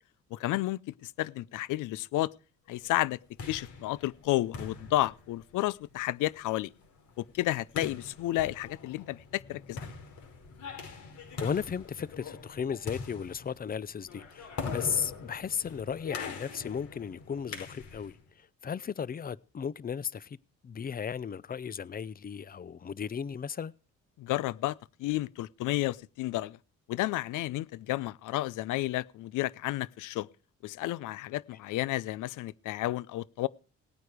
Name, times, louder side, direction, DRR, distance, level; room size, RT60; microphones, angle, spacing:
voice 1, 0.3-2.3 2.7-3.2 3.5-6.7 7.2-9.9 24.2-26.6 26.9-30.3 30.6-33.5, left 16 dB, 85° left, 0.6 m, -31 dB
sound 1, 3.1-18.2, left 5 dB, 70° left, 5.1 m, -43 dB
voice 2, 11.3-20.4 20.6-23.7, left 7 dB, 30° left, 0.6 m, -35 dB
18.5 x 9.3 x 5.0 m
cardioid pair, 90°, 30 cm